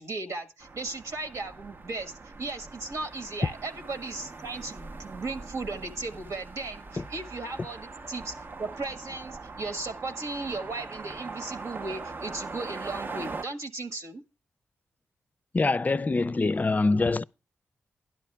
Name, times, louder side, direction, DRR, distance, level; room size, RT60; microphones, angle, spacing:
voice 1, 0.0-2.1 2.4-14.2, right 3 dB, 70° right, 1.6 m, -36 dB
sound 1, 0.6-13.4, right 3 dB, 40° right, 0.7 m, -41 dB
voice 2, 15.5-17.2, left 3 dB, 30° left, 0.5 m, -24 dB
12.5 x 10.5 x 3.4 m
cardioid pair, 50°, 5 cm